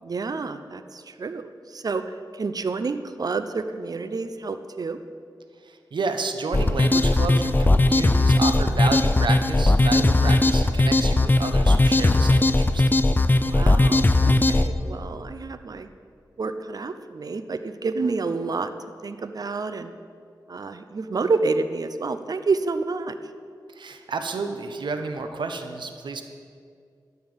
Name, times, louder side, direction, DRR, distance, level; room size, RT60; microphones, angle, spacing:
voice 1, 0.0-2.0 2.3-5.0 13.4-15.9 16.4-18.7 19.0-19.9 20.5-23.1, right 4 dB, 55° right, 10 dB, 0.6 m, -29 dB
voice 2, 5.6-12.8 23.7-26.2, right 4 dB, 90° right, 6 dB, 1.0 m, -31 dB
sound 1, 6.5-14.7, left 2 dB, 25° left, 0.5 m, -18 dB
12.0 x 5.8 x 9.0 m, 2.3 s
wide cardioid pair, 95°, 8 cm